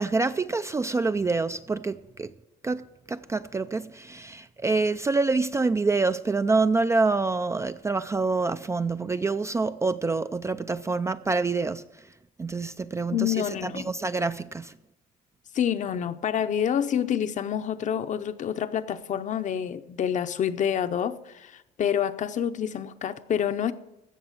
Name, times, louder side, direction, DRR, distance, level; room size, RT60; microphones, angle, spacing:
voice 1, 0.0-2.3 2.6-11.8 12.4-13.3 13.6-14.7, right 3 dB, 15° right, 0.3 m, -26 dB
voice 2, 13.1-13.9 15.5-23.7, left 9 dB, 45° left, 0.7 m, -27 dB
16.0 x 6.1 x 7.3 m
cardioid pair, 110°, 17 cm